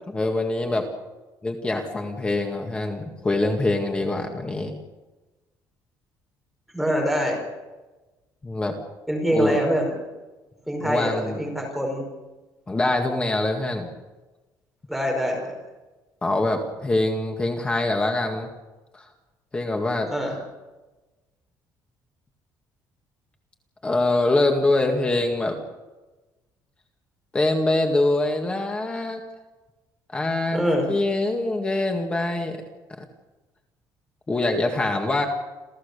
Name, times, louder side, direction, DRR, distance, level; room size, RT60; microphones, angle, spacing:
voice 1, 0.1-0.8 1.4-4.7 8.4-8.7 9.3-9.6 10.8-11.4 12.7-13.9 16.2-18.5 18.9-19.1 19.5-20.1 23.8-25.6 27.3-29.2 30.1-32.6 34.3-35.3, left 2 dB, 15° left, 3 dB, 2.0 m, -24 dB
voice 2, 6.7-7.4 9.1-9.9 10.7-12.0 14.9-15.6 20.1-20.4 30.5-30.9, equal, ahead, 0 dB, 5.0 m, -24 dB
28.5 x 15.0 x 6.9 m, 1.1 s
cardioid pair, 165°, 7 cm